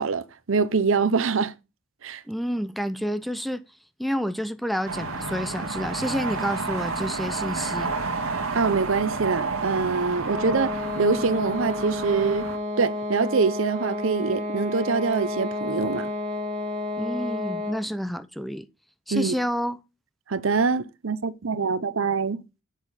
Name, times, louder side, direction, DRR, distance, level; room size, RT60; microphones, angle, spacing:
voice 1, 0.0-1.5 2.0-2.2 8.5-12.5 12.8-16.1 19.1-19.3 20.3-22.4, right 4 dB, 65° right, 0.7 m, -24 dB
voice 2, 2.3-3.6 4.0-7.9 17.0-18.7 19.1-19.8, equal, ahead, 0.6 m, -29 dB
sound 1, 4.9-12.6, right 3 dB, 85° right, 2.0 m, -30 dB
sound 2, 10.2-17.9, left 2 dB, 30° right, 2.7 m, -31 dB
8.6 x 7.4 x 4.1 m
head